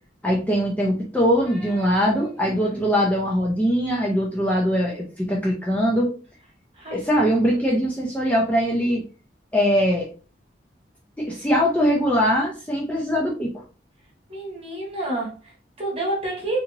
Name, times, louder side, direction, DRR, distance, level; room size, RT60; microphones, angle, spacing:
voice 1, 0.2-6.1 6.9-9.0 9.5-10.1 11.3-13.5, equal, 10° left, -2 dB, 0.5 m, -21 dB
voice 2, 1.4-2.8 6.7-7.0 14.3-16.6, right 2 dB, 35° right, -3 dB, 1.3 m, -30 dB
2.8 x 2.8 x 2.5 m, 0.36 s
head